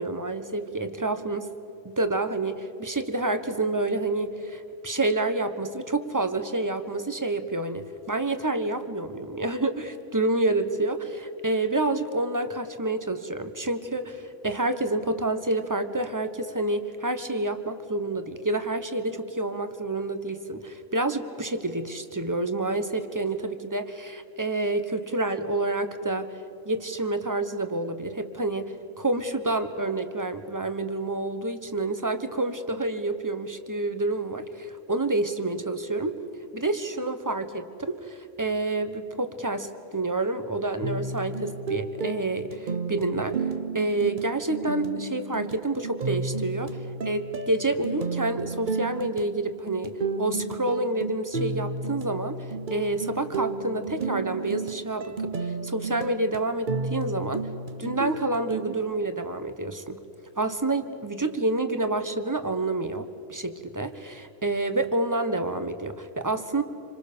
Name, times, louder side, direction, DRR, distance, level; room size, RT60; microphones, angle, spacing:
voice 1, 0.0-1.5 1.8-26.4 26.6-36.2 36.5-43.5 43.7-57.5 57.8-60.0 60.4-66.6, right 2 dB, 15° right, 9 dB, 1.1 m, -28 dB
sound 1, 40.8-58.8, right 4 dB, 40° right, 1.0 m, -32 dB
27.0 x 26.0 x 6.9 m, 2.5 s
omnidirectional pair, 1.4 m